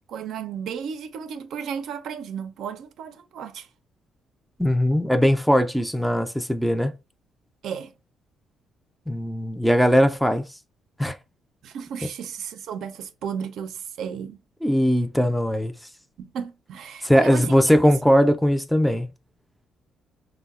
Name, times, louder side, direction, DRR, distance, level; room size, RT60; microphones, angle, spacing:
voice 1, 0.1-3.7 7.6-7.9 11.6-14.4 16.2-17.6, right 7 dB, 75° right, 0.4 m, -34 dB
voice 2, 4.6-6.9 9.1-10.5 11.0-11.2 14.6-15.7 17.0-19.1, equal, ahead, 0.3 m, -20 dB
3.7 x 2.0 x 2.4 m
cardioid pair, 90°, 0 cm